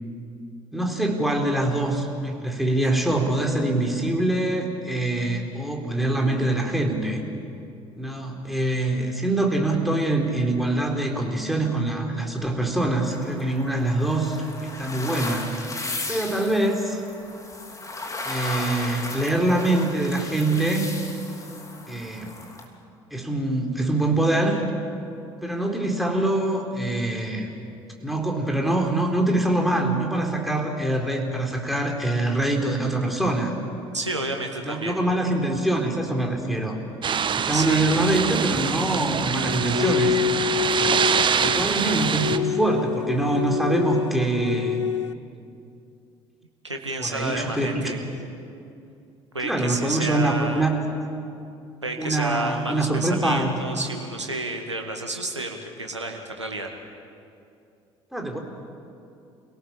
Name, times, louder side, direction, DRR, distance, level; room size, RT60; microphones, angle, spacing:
voice 1, 0.7-7.2 8.0-15.6 16.1-17.0 18.2-20.9 21.9-22.3 23.1-24.6 25.4-27.5 28.0-33.5 34.6-36.8 37.3-40.2 41.4-44.8 47.0-47.9 49.4-50.8 52.0-53.6 58.1-58.4, right 1 dB, ahead, 1 dB, 4.1 m, -24 dB
sound 1, 13.0-22.6, left 2 dB, 20° left, 3.1 m, -35 dB
voice 2, 33.9-35.0 37.5-37.8 46.6-48.0 49.3-50.7 51.8-56.7, right 2 dB, 90° right, 3 dB, 1.8 m, -30 dB
sound 2, 37.0-42.4, right 7 dB, 35° right, 1.1 m, -25 dB
sound 3, 39.4-45.1, left 8 dB, 85° left, 0.5 m, -27 dB
28.5 x 18.0 x 7.4 m, 2.6 s
figure-of-eight pair, 55°, 15 cm